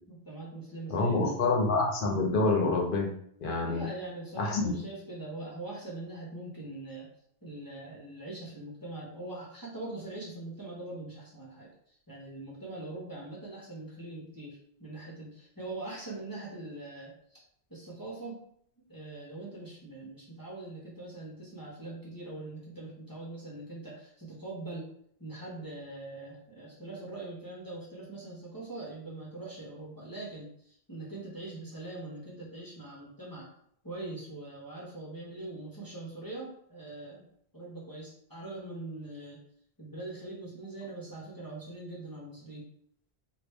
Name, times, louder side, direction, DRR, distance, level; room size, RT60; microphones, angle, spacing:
voice 1, 0.1-1.4 3.6-7.1 7.4-17.4 17.7-18.4 18.9-24.9 25.2-33.5 33.8-37.2 37.5-39.4 39.8-42.6, right 2 dB, 20° left, -6 dB, 0.8 m, -42 dB
voice 2, 0.9-3.1 3.4-3.9 4.4-4.8, left 3 dB, 60° left, 0 dB, 0.8 m, -27 dB
2.9 x 2.4 x 3.4 m, 0.66 s
omnidirectional pair, 1.1 m